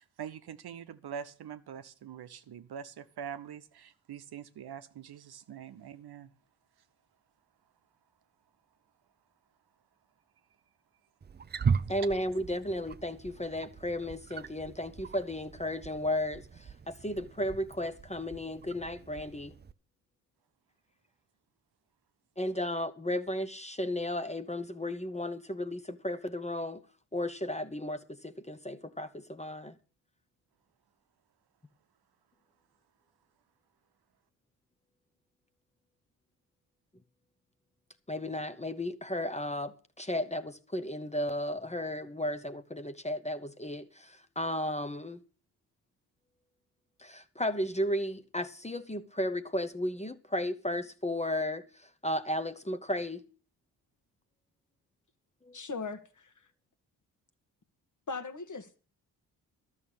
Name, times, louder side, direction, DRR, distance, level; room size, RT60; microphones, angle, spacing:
voice 1, 0.0-6.3, right 8 dB, 50° right, 0.9 m, -44 dB
Wild animals, 11.2-19.7, right 6 dB, 20° right, 0.5 m, -38 dB
voice 2, 11.9-16.5 16.9-19.5 22.4-26.8 27.1-29.7 38.1-45.2 47.0-51.6 52.0-53.2 55.5-55.6, left 1 dB, 15° left, 1.0 m, -34 dB
voice 3, 55.5-56.5 58.1-58.8, left 4 dB, 40° left, 1.7 m, -39 dB
12.5 x 6.5 x 8.8 m
hypercardioid pair, 40°, 48 cm